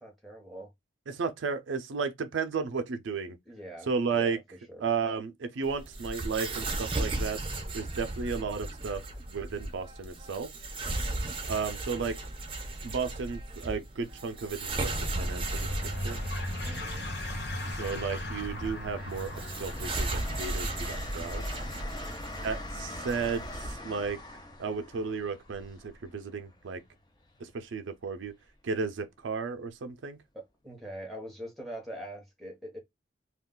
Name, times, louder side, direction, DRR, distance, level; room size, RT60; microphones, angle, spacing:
voice 1, 0.0-0.7 3.5-4.4 4.7-4.9 11.0-11.4 16.6-17.1 22.0-23.3 30.3-32.8, right 1 dB, ahead, 0.8 m, -44 dB
voice 2, 1.1-3.4 3.9-4.4 4.8-7.4 7.7-9.0 9.3-10.5 11.5-12.2 12.8-16.2 17.7-21.4 22.4-24.2 24.6-26.8 27.4-28.3 28.6-30.2, right 5 dB, 75° right, 0.4 m, -33 dB
sound 1, 5.6-23.7, right 2 dB, 25° right, 0.5 m, -36 dB
sound 2, 14.7-25.8, left 1 dB, 60° left, 0.7 m, -39 dB
Train, 18.2-26.6 28.2-28.5, left 2 dB, 20° left, 0.4 m, -44 dB
2.3 x 2.3 x 3.6 m
head